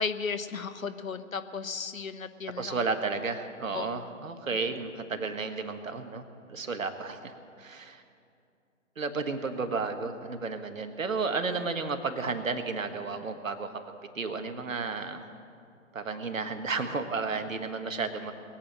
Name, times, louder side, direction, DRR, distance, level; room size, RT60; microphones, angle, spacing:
voice 1, 0.0-2.8 3.7-4.0 4.5-4.7, left 5 dB, 85° left, 11 dB, 1.1 m, -35 dB
voice 2, 2.6-6.2 6.5-8.0 9.0-13.8 14.1-15.3 15.9-18.3, right 4 dB, 75° right, 7 dB, 1.6 m, -32 dB
20.5 x 8.7 x 7.7 m, 2.5 s
figure-of-eight pair, 140°, 40 cm